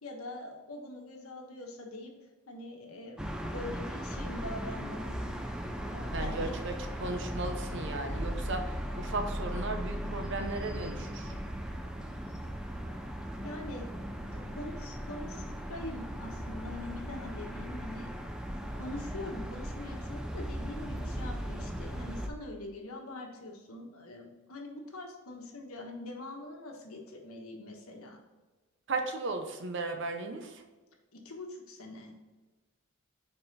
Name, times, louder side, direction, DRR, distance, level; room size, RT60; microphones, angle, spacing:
voice 1, 0.0-2.1 2.5-3.2 3.5-5.3 5.9-6.6 13.4-13.9 14.3-18.1 18.8-28.2 31.1-32.1, left 2 dB, 80° left, 1 dB, 1.2 m, -43 dB
sound 1, 3.2-22.3, equal, 5° right, 0.4 m, -37 dB
voice 2, 6.1-11.3 28.9-30.6, right 3 dB, 55° right, 5 dB, 0.7 m, -36 dB
5.5 x 4.3 x 4.1 m, 1.2 s
head